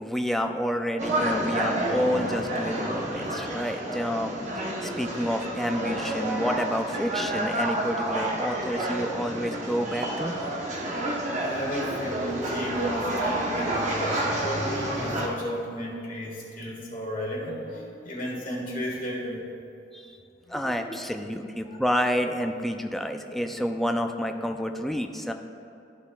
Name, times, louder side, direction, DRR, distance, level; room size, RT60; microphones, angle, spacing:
voice 1, 0.0-10.3 19.9-20.2 20.5-25.3, equal, ahead, 5 dB, 0.3 m, -29 dB
sound 1, 1.0-15.3, right 1 dB, 40° right, 0.9 m, -29 dB
voice 2, 11.4-19.4 20.4-20.8, equal, 50° left, -4 dB, 1.6 m, -34 dB
13.0 x 5.6 x 2.3 m, 2.6 s
head